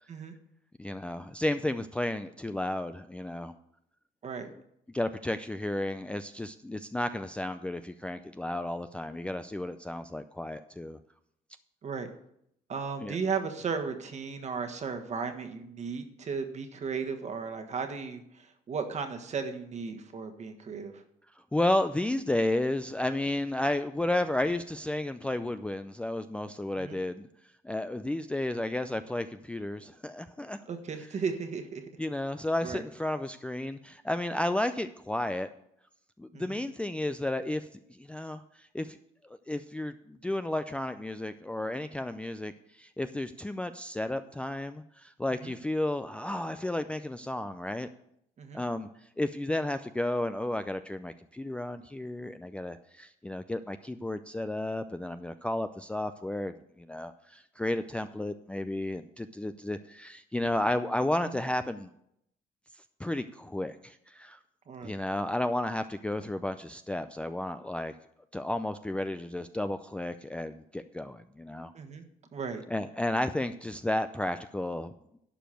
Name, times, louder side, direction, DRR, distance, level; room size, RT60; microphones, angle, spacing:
voice 1, 0.8-3.5 4.9-11.0 13.0-13.2 21.5-27.3 27.6-30.6 32.0-35.5 36.2-37.7 38.0-39.0 39.2-47.9 48.5-48.9 49.2-61.9 63.0-64.4 64.8-67.9 68.3-71.7 72.7-74.9, left 1 dB, 5° left, 9 dB, 0.4 m, -32 dB
voice 2, 12.7-21.0 26.8-27.0 30.7-31.8 32.6-32.8 36.3-36.6 45.4-45.5 48.4-48.6 61.2-61.4 64.7-64.9 71.7-72.0 72.3-72.6, right 5 dB, 40° right, 6 dB, 1.5 m, -35 dB
11.5 x 5.1 x 7.5 m, 0.74 s
cardioid pair, 110°, 17 cm